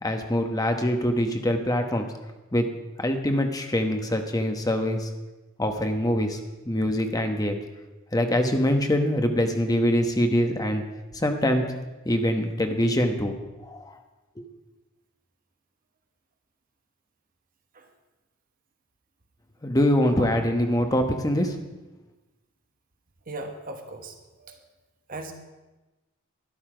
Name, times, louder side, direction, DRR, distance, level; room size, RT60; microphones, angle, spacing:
voice 1, 0.0-2.1 2.5-2.7 3.0-5.1 5.6-6.4 6.6-7.6 8.1-10.8 11.1-11.6 12.0-13.4 13.6-13.9 14.4-14.5 19.6-21.6, left 1 dB, 20° left, 5 dB, 1.2 m, -24 dB
voice 2, 23.3-24.6 25.1-25.3, right 2 dB, 45° right, 5 dB, 1.3 m, -38 dB
12.0 x 11.0 x 5.0 m, 1.1 s
head